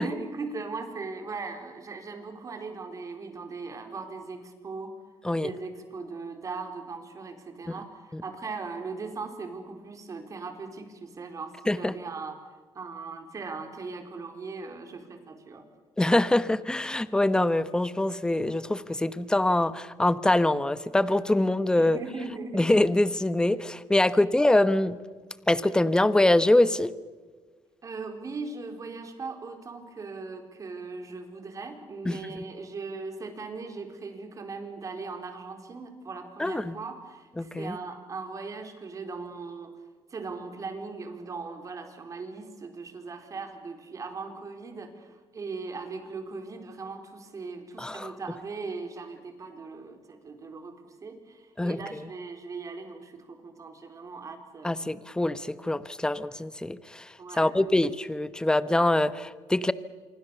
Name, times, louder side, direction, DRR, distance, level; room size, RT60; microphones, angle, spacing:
voice 1, 0.0-4.9 5.4-12.3 12.7-15.7 21.8-22.6 24.1-24.2 27.8-39.7 40.1-54.8 57.2-57.6, right 4 dB, 40° right, 6 dB, 4.2 m, -39 dB
voice 2, 16.0-22.0 22.5-24.9 25.5-26.9 32.0-32.4 36.4-36.8 37.4-37.8 47.8-48.1 51.6-52.0 54.6-59.7, left 1 dB, 10° left, 14 dB, 1.1 m, -24 dB
26.5 x 24.0 x 7.1 m, 1.4 s
cardioid pair, 100°, 9 cm